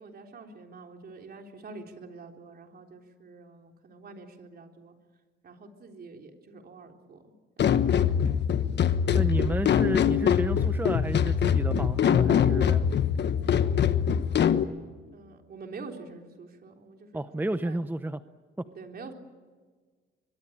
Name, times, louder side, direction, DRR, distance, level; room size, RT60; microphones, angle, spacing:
voice 1, 0.0-4.9 5.4-7.2 7.6-7.8 15.1-17.8 18.7-19.1, right 3 dB, 50° right, 3 dB, 3.7 m, -46 dB
sound 1, 7.6-14.6, left 8 dB, 60° left, 1.3 m, -23 dB
voice 2, 9.1-12.8 17.1-18.2 18.6-18.7, right 1 dB, 10° right, 11 dB, 0.8 m, -32 dB
23.5 x 22.5 x 8.9 m, 1.5 s
cardioid pair, 90°, 20 cm